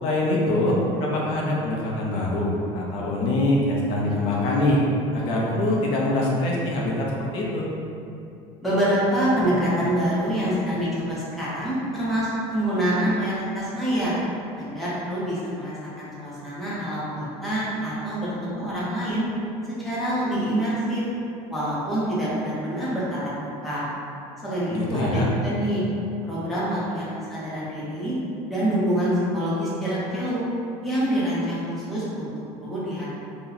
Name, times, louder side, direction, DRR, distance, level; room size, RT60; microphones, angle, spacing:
voice 1, 0.0-4.8 5.1-7.7 24.7-25.3, left 1 dB, 50° left, -4 dB, 0.5 m, -24 dB
voice 2, 8.6-14.1 14.6-19.3 19.8-21.0 21.5-23.8 24.4-25.8 26.3-28.1 28.5-30.4 30.8-32.3 32.6-33.1, equal, ahead, -10 dB, 0.6 m, -26 dB
2.7 x 2.1 x 3.9 m, 2.7 s
cardioid pair, 175°, 12 cm